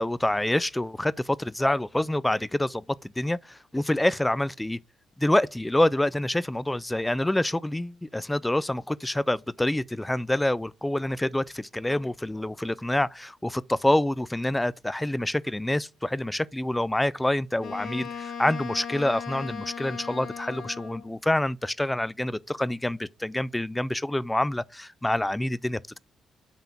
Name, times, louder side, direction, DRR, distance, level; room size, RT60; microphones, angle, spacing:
voice 1, 0.0-4.8 5.2-26.0, left 1 dB, 10° left, 0.3 m, -27 dB
Wind instrument woodwind instrument, 17.6-21.1, left 7 dB, 60° left, 1.1 m, -37 dB
5.6 x 3.8 x 5.8 m
cardioid pair, 105°, 0 cm